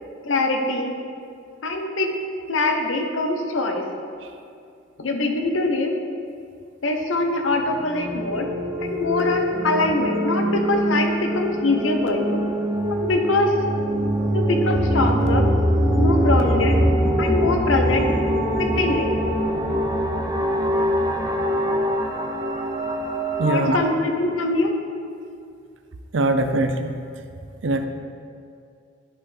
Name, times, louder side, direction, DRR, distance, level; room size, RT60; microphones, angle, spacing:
voice 1, 0.2-0.9 1.6-2.1 2.5-3.9 5.0-5.9 6.8-8.5 8.8-12.4 12.9-13.5 14.3-15.5 16.0-16.8 17.2-18.1 18.6-19.1 23.4-24.7, left 2 dB, 80° left, 4 dB, 0.8 m, -23 dB
sound 1, 7.7-23.8, equal, 20° right, 0.6 m, -23 dB
voice 2, 23.4-23.8 26.1-26.9 27.6-27.9, right 2 dB, 65° right, 7 dB, 0.5 m, -21 dB
10.5 x 5.6 x 3.4 m, 2.4 s
head